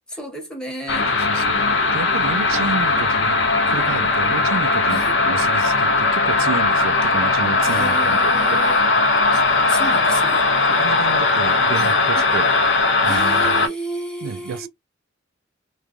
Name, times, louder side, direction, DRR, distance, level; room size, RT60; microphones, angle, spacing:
voice 1, 0.2-1.1 4.9-5.2 7.6-8.8 9.3-10.5 11.7-12.3 13.0-14.7, right 1 dB, 5° left, 1.0 m, -32 dB
sound 1, 0.9-13.7, left 3 dB, 65° left, 0.6 m, -18 dB
voice 2, 1.1-1.6 1.9-8.6 10.7-13.7 14.2-14.7, right 5 dB, 90° right, 0.4 m, -31 dB
3.1 x 2.2 x 2.4 m
head